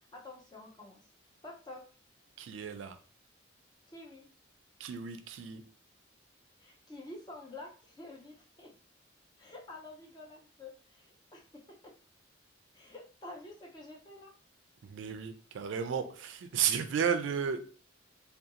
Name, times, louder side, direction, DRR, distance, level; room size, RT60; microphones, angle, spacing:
voice 1, 0.1-1.0 1.4-1.8 3.9-4.3 6.6-8.7 9.4-11.9 12.7-14.3, left 2 dB, 20° left, 0 dB, 0.4 m, -49 dB
voice 2, 2.4-3.0 4.8-5.6 14.8-17.6, right 7 dB, 65° right, 9 dB, 0.3 m, -33 dB
2.4 x 2.3 x 2.8 m, 0.40 s
head